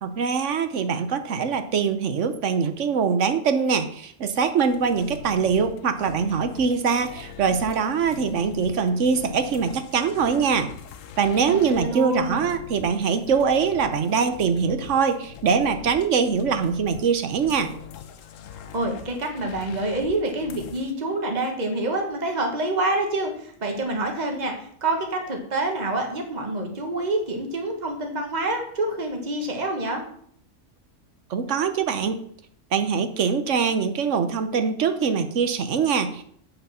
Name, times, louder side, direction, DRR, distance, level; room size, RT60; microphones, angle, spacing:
voice 1, 0.0-10.7 11.2-17.7 31.3-32.2 32.7-36.2, right 6 dB, 70° right, 9 dB, 1.2 m, -23 dB
sound 1, 4.6-20.9, left 8 dB, 85° left, 1.1 m, -42 dB
voice 2, 11.5-12.4 18.7-24.5 24.8-30.0, right 2 dB, 35° right, 2 dB, 1.5 m, -27 dB
8.1 x 5.7 x 5.6 m, 0.63 s
omnidirectional pair, 1.3 m